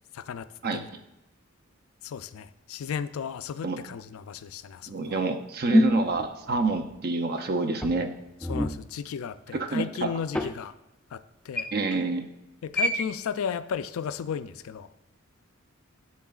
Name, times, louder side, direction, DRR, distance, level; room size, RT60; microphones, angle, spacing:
voice 1, 0.1-0.9 2.0-5.2 8.5-10.7 11.1-11.7 12.6-14.9, left 7 dB, 80° left, 13 dB, 0.3 m, -35 dB
voice 2, 4.9-8.1 9.5-10.1 11.7-12.3, right 3 dB, 50° right, 8 dB, 0.6 m, -28 dB
sound 1, 5.7-7.0 7.8-8.8 10.3-10.5 11.6-12.0 12.7-13.1, equal, 5° left, 0.3 m, -25 dB
7.5 x 7.3 x 2.4 m, 0.94 s
head